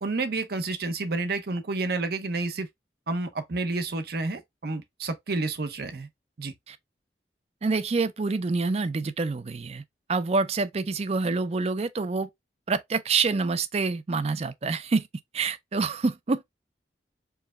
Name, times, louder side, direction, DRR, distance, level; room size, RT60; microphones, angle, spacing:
voice 1, 0.0-2.7 3.1-6.1 6.4-6.5, right 3 dB, 60° right, 0.8 m, -30 dB
voice 2, 7.6-9.8 10.1-12.3 12.7-15.1 15.3-16.5, right 4 dB, 35° right, 0.4 m, -27 dB
4.6 x 2.2 x 3.5 m
head